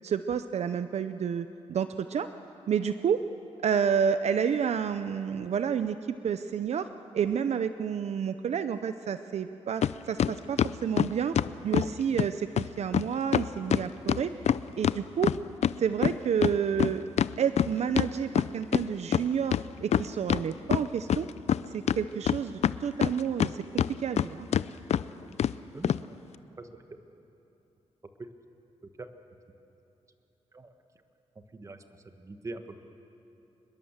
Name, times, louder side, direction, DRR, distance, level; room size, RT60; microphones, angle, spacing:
voice 1, 0.0-2.3 2.7-3.2 3.6-6.9 7.1-11.4 11.6-14.3 14.8-15.3 15.8-17.0 17.4-21.3 21.7-24.5, right 7 dB, 65° right, 10 dB, 0.6 m, -30 dB
sound 1, 9.8-9.9 10.2-11.9 12.2-12.3 12.6-12.7 12.9-13.0 13.3-15.8 16.0-18.8 19.1-19.2 19.5-20.4 20.7-21.6 21.9-23.5 23.8-24.3 24.5-24.6 24.9-25.0 25.4-25.5 25.8-26.0, left 9 dB, 65° left, 0.5 m, -25 dB
voice 2, 31.5-32.8, right 2 dB, 25° right, 7 dB, 1.4 m, -43 dB
26.0 x 21.5 x 7.4 m, 2.9 s
wide cardioid pair, 140°, 12 cm